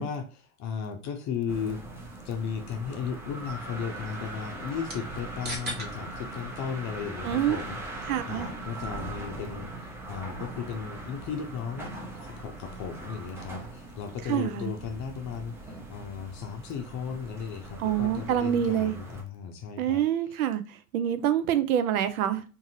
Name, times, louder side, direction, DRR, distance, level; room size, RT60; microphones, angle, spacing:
voice 1, 0.0-1.8 2.2-7.8 8.3-20.0 20.3-20.4, left 6 dB, 40° left, 0.6 m, -35 dB
sound 1, 1.5-19.2, right 2 dB, 5° right, 0.3 m, -41 dB
sound 2, 3.2-13.9, right 1 dB, 20° right, 1.1 m, -47 dB
voice 2, 7.2-7.6 8.1-8.5 14.2-14.7 17.8-19.0 19.8-22.4, right 10 dB, 75° right, 0.6 m, -26 dB
2.7 x 2.5 x 2.8 m
hypercardioid pair, 95°, 44 cm